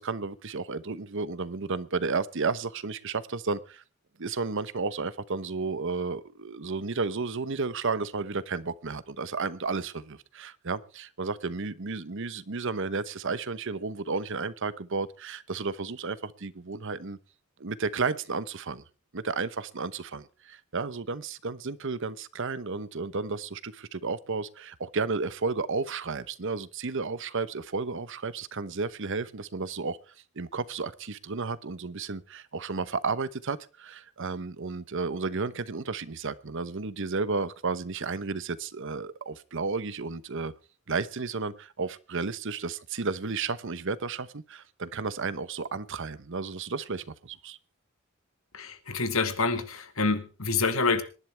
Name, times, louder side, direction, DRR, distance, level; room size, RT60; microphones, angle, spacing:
voice 1, 0.0-3.8 4.2-17.2 17.6-18.8 19.1-40.5 40.9-47.6, right 4 dB, 65° right, 0.9 m, -32 dB
voice 2, 48.5-51.0, left 4 dB, 70° left, 1.9 m, -27 dB
25.5 x 11.0 x 3.4 m
head